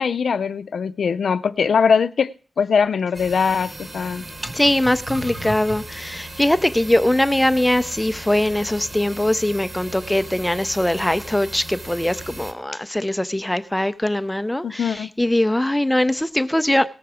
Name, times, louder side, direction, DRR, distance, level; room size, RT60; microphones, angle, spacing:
voice 1, 0.0-2.3 2.6-4.3 14.6-15.1, left 6 dB, 80° left, 0.5 m, -21 dB
sound 1, 3.1-12.5, right 1 dB, 25° right, 1.0 m, -36 dB
voice 2, 4.5-16.9, left 1 dB, 5° left, 0.5 m, -21 dB
18.5 x 7.0 x 4.9 m
wide cardioid pair, 160°, 0 cm